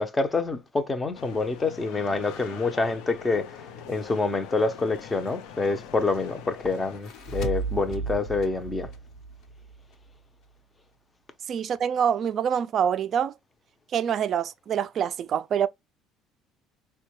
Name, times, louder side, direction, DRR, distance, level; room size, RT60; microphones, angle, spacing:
voice 1, 0.0-8.9, left 3 dB, 15° left, 0.6 m, -27 dB
sound 1, 1.1-7.0, left 8 dB, 80° left, 0.5 m, -43 dB
sound 2, 6.8-10.2, right 3 dB, 65° left, 1.0 m, -35 dB
voice 2, 11.5-13.3 13.9-15.7, right 8 dB, 45° right, 0.3 m, -25 dB
4.4 x 2.2 x 2.9 m
cardioid pair, 130°, 0 cm